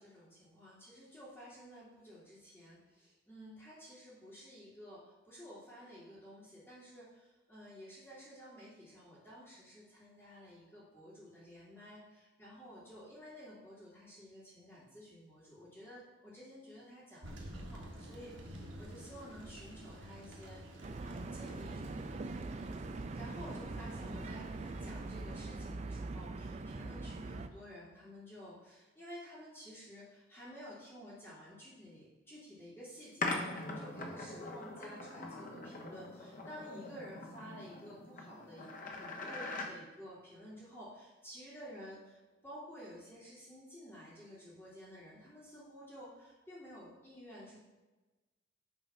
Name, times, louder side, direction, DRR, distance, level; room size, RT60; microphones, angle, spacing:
voice 1, 0.0-22.1 23.1-47.6, equal, 15° left, -12 dB, 2.6 m, -52 dB
Thunder, 17.2-25.7, right 1 dB, 80° right, 1.4 m, -51 dB
sound 1, 20.8-27.5, right 3 dB, 35° right, 0.4 m, -42 dB
sound 2, 33.2-39.7, left 2 dB, 45° left, 1.0 m, -42 dB
8.8 x 3.9 x 5.8 m, 1.2 s
head